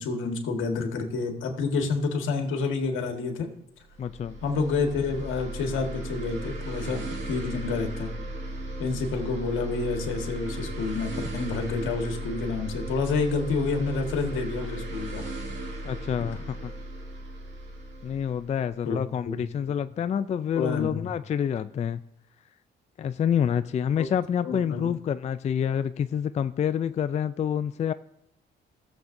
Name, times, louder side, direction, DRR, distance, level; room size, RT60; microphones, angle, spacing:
voice 1, 0.0-3.5 4.4-8.1 8.8-15.2 18.8-19.0 19.2-19.4 20.5-21.1 24.0-24.1 24.4-24.9, left 4 dB, 80° left, 3 dB, 1.6 m, -29 dB
sound 1, 3.9-19.3, right 1 dB, 60° right, 2.4 m, -36 dB
voice 2, 4.0-4.4 15.8-16.7 18.0-22.0 23.0-27.9, left 8 dB, 35° left, 12 dB, 0.3 m, -27 dB
17.5 x 7.2 x 2.6 m, 0.77 s
cardioid pair, 90°, 20 cm